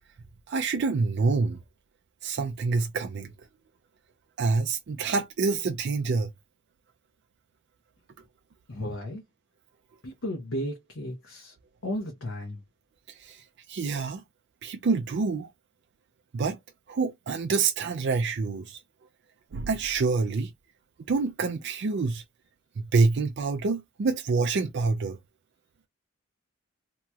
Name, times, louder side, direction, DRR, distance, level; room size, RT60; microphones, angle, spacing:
voice 1, 0.5-1.6 2.2-3.3 4.4-6.3 13.1-14.2 14.6-15.5 16.3-16.6 16.9-18.8 19.5-20.5 21.1-22.2 22.9-25.2, right 4 dB, 55° right, 0.4 m, -27 dB
voice 2, 8.7-9.2 10.0-11.5 11.8-12.6, left 1 dB, 80° left, 1.0 m, -34 dB
2.9 x 2.9 x 2.3 m
head